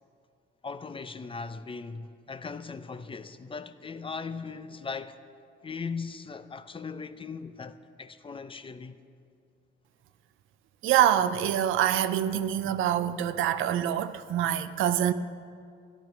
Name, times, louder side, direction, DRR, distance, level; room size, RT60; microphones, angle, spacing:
voice 1, 0.6-5.2 5.6-9.0 13.6-13.7, left 5 dB, 25° left, 0.6 m, -39 dB
voice 2, 10.8-15.1, right 10 dB, 85° right, 0.5 m, -25 dB
14.0 x 10.5 x 6.0 m
cardioid pair, 90°, 20 cm